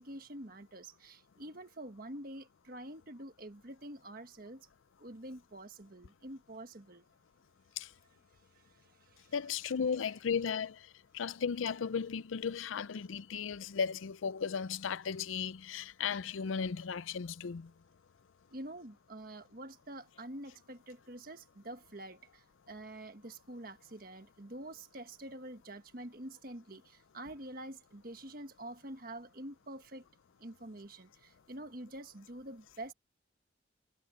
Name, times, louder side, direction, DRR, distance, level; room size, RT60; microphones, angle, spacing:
voice 1, 0.0-4.7 5.0-7.0 8.8-9.3 18.5-30.0 30.4-32.9, right 1 dB, 45° right, 1.5 m, -47 dB
voice 2, 9.3-10.9 11.1-17.7, left 6 dB, 90° left, 0.5 m, -35 dB
head